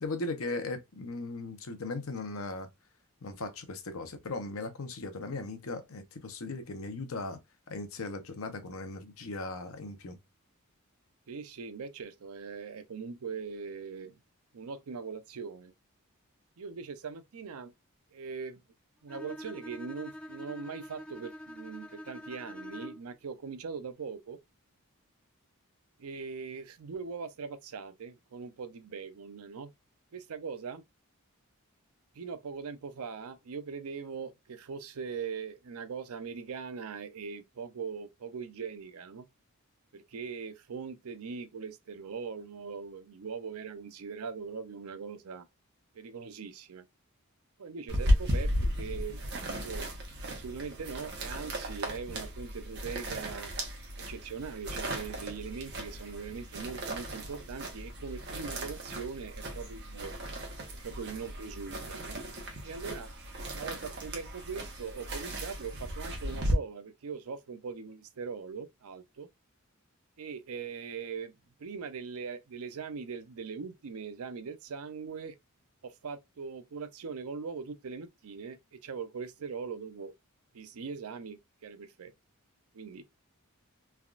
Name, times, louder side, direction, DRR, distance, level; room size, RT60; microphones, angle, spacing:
voice 1, 0.0-2.7 3.2-7.4 7.7-10.2, left 3 dB, 70° left, 0.7 m, -38 dB
voice 2, 11.3-14.2 14.5-15.7 16.6-17.7 18.1-18.6 19.0-24.4 26.0-29.7 30.1-30.8 32.1-39.3 39.9-45.5 45.9-46.9 47.6-49.2 49.5-49.9 50.3-53.5 54.0-60.1 60.8-62.2 62.6-63.1 63.5-69.3 70.2-75.4 75.8-80.1 80.5-82.1 82.7-83.0, right 5 dB, 75° right, 0.5 m, -41 dB
Bowed string instrument, 19.1-23.2, equal, 5° left, 0.6 m, -45 dB
sound 1, 47.9-66.5, equal, 50° right, 0.9 m, -35 dB
3.4 x 2.4 x 2.3 m
head